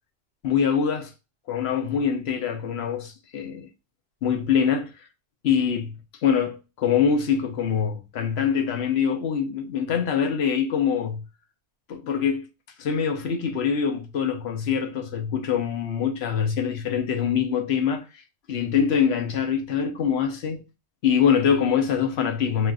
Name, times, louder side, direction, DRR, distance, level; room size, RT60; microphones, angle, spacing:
voice 1, 0.4-1.1 1.5-3.7 4.2-4.9 5.4-11.2 11.9-12.5 12.8-18.0 18.5-20.6 21.0-22.7, left 7 dB, 75° left, 1.0 m, -24 dB
6.0 x 2.5 x 2.4 m
omnidirectional pair, 1.1 m